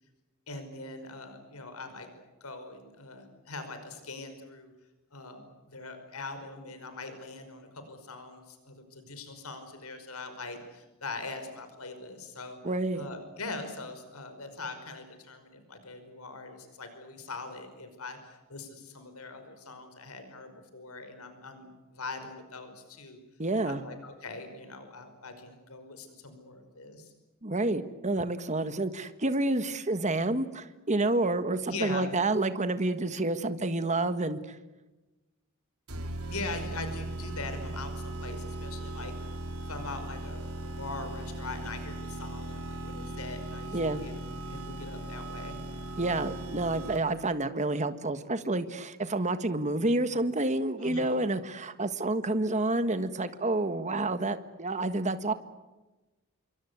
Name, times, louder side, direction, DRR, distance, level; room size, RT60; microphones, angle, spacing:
voice 1, 0.5-2.1 2.4-4.7 5.1-12.6 13.0-23.2 23.6-27.1 31.7-32.1 36.3-39.4 39.7-45.6 50.8-51.1, left 3 dB, 90° left, 8 dB, 5.3 m, -42 dB
voice 2, 12.6-13.0 23.4-23.8 27.4-34.5 43.7-44.0 46.0-55.3, right 2 dB, 35° right, 10 dB, 1.6 m, -29 dB
sound 1, 35.9-47.3, right 1 dB, 85° right, 4.1 m, -38 dB
27.5 x 24.0 x 8.2 m, 1.1 s
head